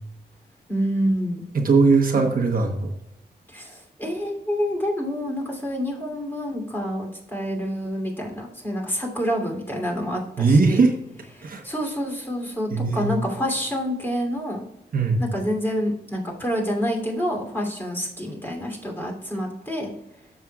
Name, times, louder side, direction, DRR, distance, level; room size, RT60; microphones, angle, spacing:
voice 1, 0.7-1.4 2.1-2.3 3.5-10.8 11.4-14.6 15.2-19.9, equal, 10° left, -1 dB, 3.0 m, -27 dB
voice 2, 1.5-2.9 10.4-10.9 11.4-11.6 12.7-13.1 14.9-15.2, right 4 dB, 55° right, 3 dB, 1.1 m, -19 dB
14.0 x 6.7 x 2.4 m, 0.85 s
wide cardioid pair, 105°, 17 cm